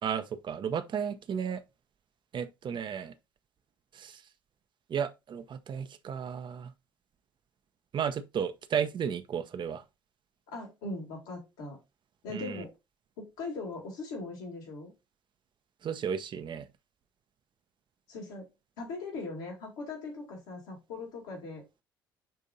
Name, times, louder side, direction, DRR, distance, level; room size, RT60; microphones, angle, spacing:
voice 1, 0.0-1.6 2.3-3.1 3.9-4.2 4.9-6.7 7.9-9.8 12.3-12.6 15.8-16.7, right 7 dB, 45° right, 0.8 m, -33 dB
voice 2, 10.5-11.8 12.2-12.7 13.2-14.9 18.1-18.5 18.8-21.6, left 3 dB, 75° left, 2.8 m, -40 dB
10.5 x 3.7 x 2.7 m
hypercardioid pair, 50°, 11 cm